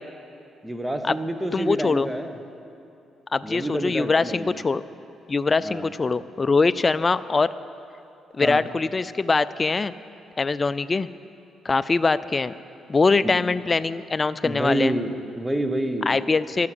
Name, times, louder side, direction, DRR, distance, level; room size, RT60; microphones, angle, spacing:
voice 1, 0.6-2.3 3.4-4.6 5.6-5.9 8.4-8.6 13.2-13.4 14.4-16.2, right 1 dB, 10° right, 7 dB, 1.2 m, -28 dB
voice 2, 1.5-2.1 3.3-4.8 5.3-7.5 8.3-9.9 10.4-11.1 11.6-12.5 12.9-14.9 16.1-16.7, left 4 dB, 30° left, 15 dB, 0.5 m, -22 dB
14.5 x 12.0 x 7.7 m, 2.7 s
cardioid pair, 80°, 0 cm